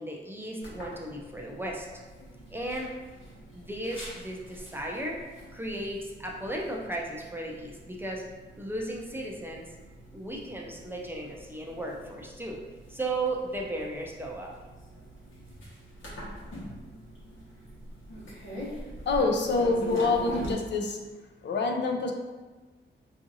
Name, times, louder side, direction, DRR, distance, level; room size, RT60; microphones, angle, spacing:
voice 1, 0.0-1.9 2.5-2.9 3.5-5.2 5.5-8.3 8.6-9.7 10.1-12.6 12.9-14.5, right 1 dB, 10° right, -1 dB, 0.4 m, -35 dB
sound 1, 0.6-20.5, equal, 90° left, 1.2 m, -44 dB
voice 2, 19.1-21.0 21.4-22.1, left 3 dB, 65° left, 3 dB, 0.5 m, -26 dB
4.7 x 2.6 x 2.6 m, 1.3 s
wide cardioid pair, 165°, 20 cm